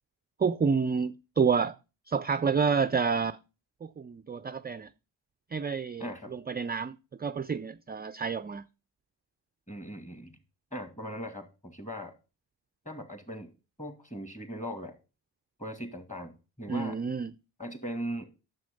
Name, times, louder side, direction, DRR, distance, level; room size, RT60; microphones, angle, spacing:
voice 1, 0.4-1.8 2.1-3.4 3.8-4.9 5.5-8.6 16.7-17.3, right 5 dB, 25° right, 0.4 m, -29 dB
voice 2, 6.0-6.3 9.7-10.4 10.7-12.1 12.9-13.5 13.8-14.9 15.6-17.0 17.6-18.3, equal, 15° left, 2.3 m, -39 dB
9.5 x 7.1 x 5.2 m
cardioid pair, 70°, 44 cm